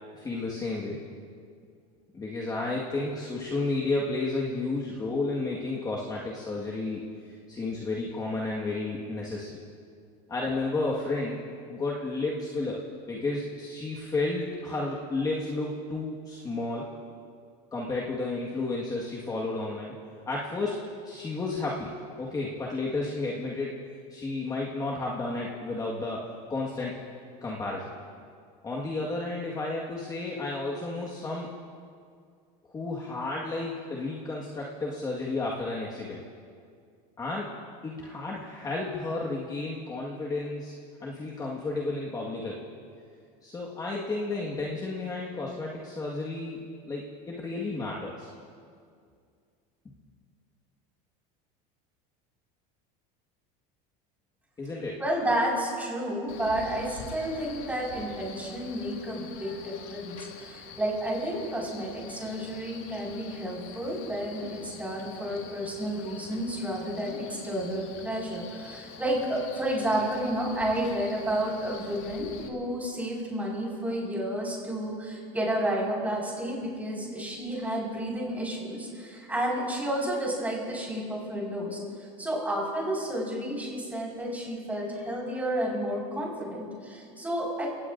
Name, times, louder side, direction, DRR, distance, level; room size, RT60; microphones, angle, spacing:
voice 1, 0.1-1.0 2.1-9.6 10.3-11.4 11.7-16.8 17.7-19.9 20.3-20.8 21.0-23.8 24.1-26.2 26.5-27.0 27.4-27.9 28.6-31.5 32.7-36.2 37.2-37.5 37.8-40.7 41.0-42.6 43.4-48.3 54.6-55.0, left 2 dB, 20° left, -4 dB, 1.7 m, -32 dB
voice 2, 55.0-87.7, right 1 dB, 10° right, -4 dB, 5.3 m, -31 dB
Male speech man speaking, 56.3-72.5, left 6 dB, 70° left, 2.0 m, -46 dB
30.0 x 18.0 x 2.6 m, 2.2 s
cardioid pair, 145°, 19 cm